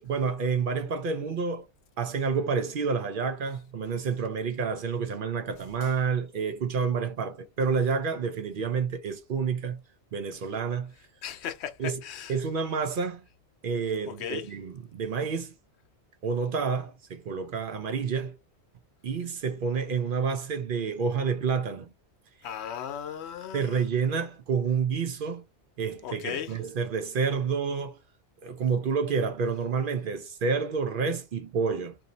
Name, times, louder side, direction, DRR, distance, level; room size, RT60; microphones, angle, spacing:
voice 1, 0.0-1.7 2.0-9.8 10.1-10.9 11.8-12.0 12.3-13.2 13.6-15.5 16.2-18.4 19.0-21.9 23.5-25.4 25.8-28.0 28.4-32.0, right 5 dB, 60° right, 0.6 m, -29 dB
voice 2, 11.2-12.4 14.1-14.5 22.4-23.8 26.0-26.5, left 9 dB, 75° left, 0.9 m, -36 dB
2.7 x 2.7 x 3.9 m
omnidirectional pair, 1.2 m